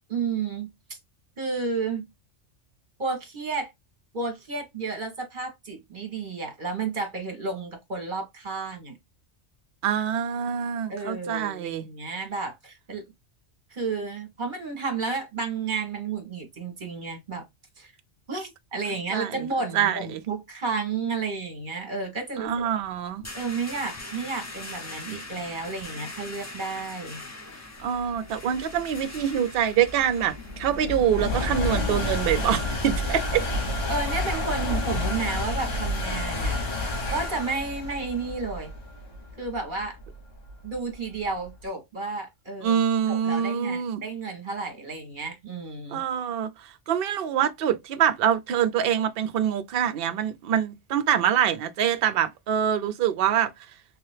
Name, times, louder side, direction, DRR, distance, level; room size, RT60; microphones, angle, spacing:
voice 1, 0.1-0.7 1.4-2.0 3.0-3.7 4.1-8.9 10.9-13.1 13.7-17.4 17.8-17.9 18.3-22.7 23.3-27.2 33.9-38.7 39.4-40.0 40.6-42.8 43.1-46.0, right 4 dB, 45° right, 1.5 m, -32 dB
voice 2, 9.8-11.8 19.1-19.4 19.7-20.2 22.4-23.2 27.8-33.4 42.6-44.0 45.9-53.5, right 9 dB, 60° right, 0.7 m, -25 dB
paisaje-sonoro-uem-libro-paula, 22.5-34.1, left 2 dB, 20° left, 0.4 m, -43 dB
sound 1, 28.1-41.5, left 1 dB, 90° left, 1.5 m, -30 dB
3.4 x 2.8 x 3.2 m
omnidirectional pair, 1.2 m